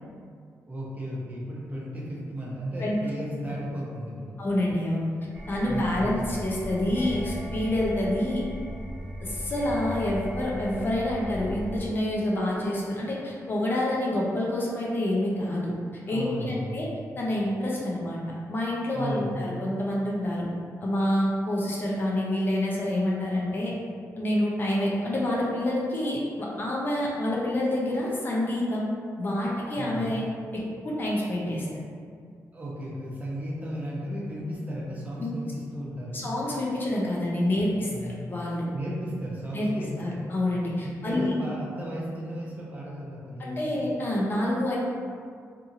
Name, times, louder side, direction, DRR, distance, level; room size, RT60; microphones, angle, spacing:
voice 1, 0.7-4.4 5.6-6.3 16.1-16.9 18.9-19.5 29.7-30.1 32.5-36.3 37.9-38.2 38.7-40.4 40.8-43.8, equal, 25° right, -6 dB, 0.6 m, -35 dB
voice 2, 4.4-5.1 5.5-8.4 9.2-15.7 16.1-16.9 17.2-18.2 18.5-20.5 20.8-23.7 24.2-28.9 29.2-30.2 30.5-31.7 35.2-35.4 36.1-38.7 39.5-39.7 40.0-41.3 43.4-44.8, left 1 dB, 35° left, -5 dB, 0.5 m, -27 dB
sound 1, 5.3-11.8, equal, 5° left, 0.8 m, -37 dB
2.7 x 2.6 x 2.5 m, 2.1 s
wide cardioid pair, 125°, 6 cm